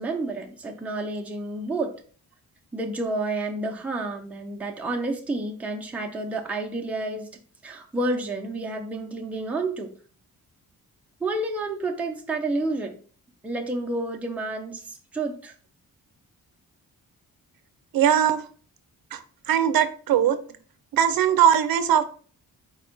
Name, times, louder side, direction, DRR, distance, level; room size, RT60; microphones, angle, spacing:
voice 1, 0.0-1.9 2.7-7.3 7.6-9.9 11.2-12.9 13.4-15.5, right 2 dB, 5° right, 1 dB, 0.4 m, -30 dB
voice 2, 17.9-18.4 19.1-19.2 19.5-20.4 20.9-22.0, right 9 dB, 75° right, 11 dB, 0.5 m, -20 dB
4.2 x 2.2 x 3.8 m, 0.42 s
wide cardioid pair, 175°, 36 cm